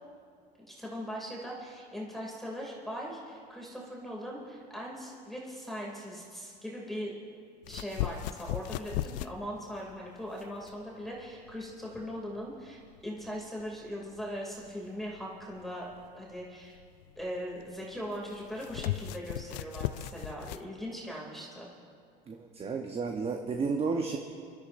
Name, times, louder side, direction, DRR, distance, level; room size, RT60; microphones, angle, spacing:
voice 1, 0.7-7.1 7.7-15.9 16.1-16.8 17.2-21.7, equal, ahead, -4 dB, 2.6 m, -40 dB
sound 1, 7.6-20.7, left 14 dB, 85° left, 0.4 m, -39 dB
voice 2, 22.3-24.2, right 4 dB, 30° right, 2 dB, 1.0 m, -32 dB
24.5 x 13.0 x 2.6 m, 2.2 s
supercardioid pair, 105°, 21 cm